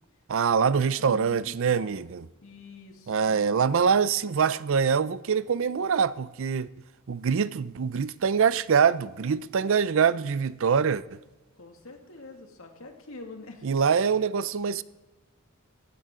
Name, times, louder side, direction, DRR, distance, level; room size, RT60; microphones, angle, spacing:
voice 1, 0.3-2.3 3.1-6.7 7.1-11.2 13.6-14.8, right 6 dB, 65° right, 0.5 m, -24 dB
voice 2, 0.9-2.0 2.4-3.6 11.5-13.7, left 3 dB, 75° left, 2.2 m, -46 dB
17.0 x 14.5 x 3.8 m
head